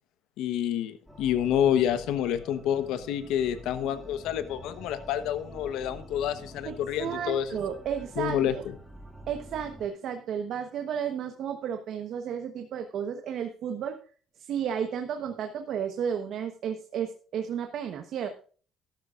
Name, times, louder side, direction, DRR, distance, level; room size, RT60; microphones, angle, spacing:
voice 1, 0.4-7.5 8.2-8.7, left 10 dB, 80° left, 11 dB, 1.0 m, -28 dB
sound 1, 1.1-9.9, equal, 5° left, 2.1 m, -47 dB
voice 2, 6.6-8.4 9.3-14.0 14.4-18.4, right 8 dB, 65° right, 6 dB, 1.1 m, -33 dB
13.5 x 12.0 x 2.5 m, 0.40 s
cardioid pair, 100°, 0 cm